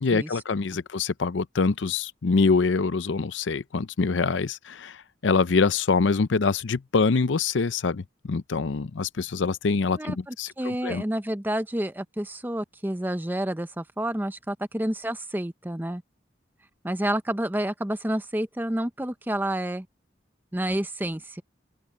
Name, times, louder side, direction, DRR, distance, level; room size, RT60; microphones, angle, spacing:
voice 1, 0.0-11.0, left 4 dB, 80° left, 0.6 m, -25 dB
voice 2, 9.9-16.0 16.8-19.9 20.5-21.4, right 1 dB, 10° right, 0.7 m, -29 dB
open air
head